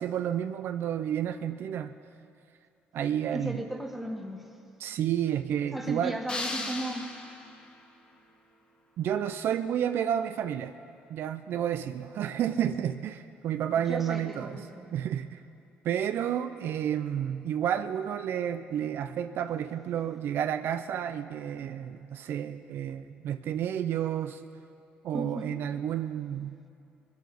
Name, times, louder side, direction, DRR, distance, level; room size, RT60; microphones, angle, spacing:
voice 1, 0.0-1.9 2.9-3.6 4.8-6.2 9.0-10.7 11.1-14.6 14.9-15.4 15.8-24.4 25.0-26.6, right 9 dB, 65° right, 9 dB, 0.5 m, -30 dB
voice 2, 3.3-4.6 5.7-7.2 13.9-14.9 25.1-25.6, right 1 dB, 5° right, 3 dB, 1.6 m, -36 dB
sound 1, 6.3-7.8, left 2 dB, 25° left, 2.0 m, -36 dB
21.0 x 8.5 x 6.2 m, 2.6 s
cardioid pair, 90°, 4 cm